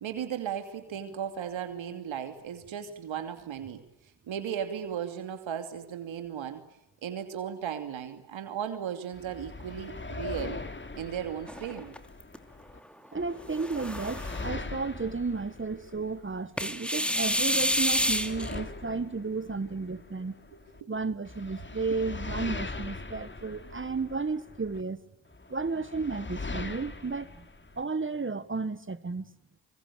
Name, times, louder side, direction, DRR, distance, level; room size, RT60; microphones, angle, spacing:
voice 1, 0.0-3.8 4.3-6.6 7.0-10.6 11.0-11.9 20.5-20.9, right 8 dB, 75° right, 2.8 m, -36 dB
sound 1, 9.1-12.8 13.1-16.8 17.2-20.8 21.2-24.8 25.3-27.8, left 3 dB, 25° left, 2.7 m, -41 dB
sound 2, 11.5-12.4 13.4-14.5 16.6-18.6, equal, ahead, 2.9 m, -29 dB
voice 2, 13.1-20.3 20.9-25.0 25.5-27.4 27.8-29.3, right 4 dB, 25° right, 1.6 m, -33 dB
25.0 x 24.5 x 8.6 m
supercardioid pair, 55°, 47 cm